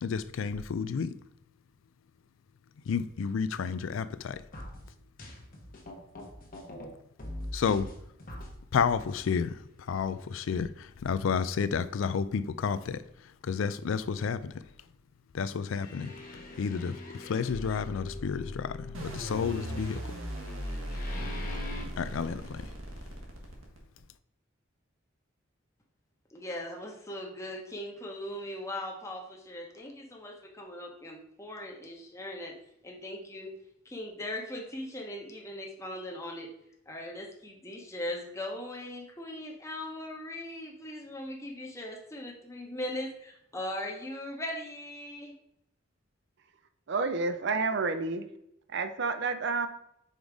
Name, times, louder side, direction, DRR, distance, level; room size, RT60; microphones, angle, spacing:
voice 1, 0.0-1.2 2.9-4.4 7.5-7.9 8.7-9.6 9.9-13.0 13.4-14.5 15.3-16.1 16.6-20.1 22.0-22.7, left 6 dB, 70° left, 0.4 m, -31 dB
sound 1, 4.5-6.9 7.2-8.5 8.9-9.3 9.9-10.0 10.6-10.7 11.3-11.4 15.7-21.9, left 1 dB, 45° left, 1.1 m, -43 dB
sound 2, 18.9-24.0, equal, 80° right, 1.4 m, -37 dB
voice 2, 26.3-32.5 32.8-33.5 33.8-36.5 36.9-45.3, left 1 dB, 15° left, 0.9 m, -39 dB
voice 3, 46.9-48.3 48.7-49.7, right 4 dB, 60° right, 0.5 m, -29 dB
5.2 x 3.9 x 4.7 m
head